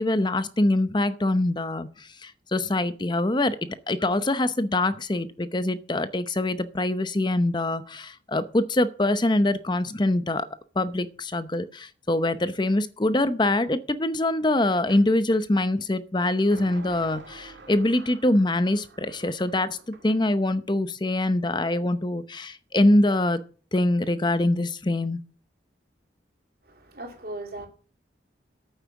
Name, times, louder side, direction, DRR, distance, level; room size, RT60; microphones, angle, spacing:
voice 1, 0.0-3.6 3.9-10.4 10.8-19.8 20.0-23.4 23.7-25.2, left 1 dB, 25° left, 0.7 m, -24 dB
sound 1, 14.9-15.1 16.5-20.3, right 2 dB, 80° right, 1.9 m, -47 dB
voice 2, 26.7-27.7, right 2 dB, 55° right, 2.9 m, -38 dB
8.9 x 8.5 x 7.1 m
head